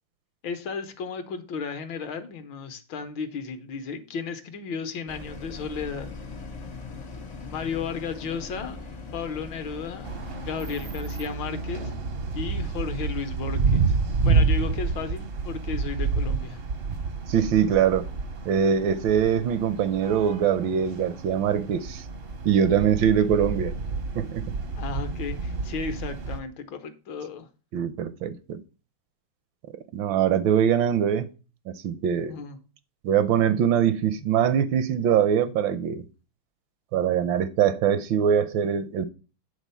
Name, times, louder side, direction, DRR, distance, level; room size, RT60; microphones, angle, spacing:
voice 1, 0.4-6.1 7.5-8.8 9.1-10.1 10.4-12.0 12.3-14.0 14.2-16.6 24.8-27.5 32.2-32.6, left 5 dB, 70° left, 1.6 m, -34 dB
sound 1, 5.1-10.9, left 3 dB, 90° left, 0.3 m, -40 dB
sound 2, 10.0-26.4, right 4 dB, 55° right, 0.6 m, -29 dB
voice 2, 17.3-18.0 18.5-22.0 22.4-23.7 24.1-24.4 27.7-28.6 29.9-31.3 31.7-32.4 33.0-36.0 36.9-39.1, right 8 dB, 80° right, 1.3 m, -23 dB
8.3 x 3.8 x 5.5 m
omnidirectional pair, 2.2 m